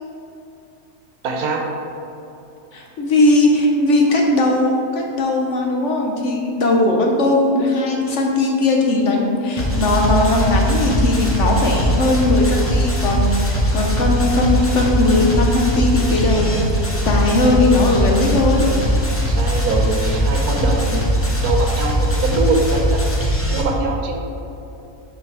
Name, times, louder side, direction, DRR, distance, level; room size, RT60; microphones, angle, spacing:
voice 1, 1.2-1.6 19.3-21.0 21.4-22.8 23.5-24.2, right 3 dB, 75° right, 2 dB, 1.2 m, -22 dB
voice 2, 2.7-16.6 17.1-18.7, left 2 dB, 60° left, 1 dB, 0.9 m, -18 dB
sound 1, 9.6-23.6, equal, 20° left, 0.3 m, -20 dB
5.6 x 4.5 x 4.7 m, 2.8 s
omnidirectional pair, 1.6 m